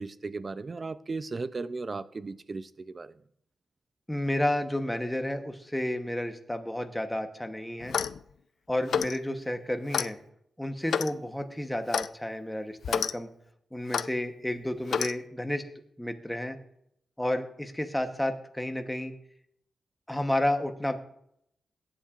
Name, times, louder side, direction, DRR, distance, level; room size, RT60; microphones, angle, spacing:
voice 1, 0.0-3.1, right 3 dB, 35° right, 14 dB, 0.5 m, -36 dB
voice 2, 4.1-7.9 8.7-10.2 10.6-13.3 13.7-15.6 16.0-16.6 17.2-19.1 20.1-21.0, left 1 dB, 5° left, 5 dB, 1.0 m, -31 dB
Clock, 7.8-8.2 8.9-9.2 9.9-10.1 10.9-11.2 11.9-12.1 12.8-13.1 13.9-14.1 14.9-15.1, left 7 dB, 80° left, 0.3 m, -29 dB
22.0 x 8.7 x 2.5 m, 0.74 s
wide cardioid pair, 115°, 0 cm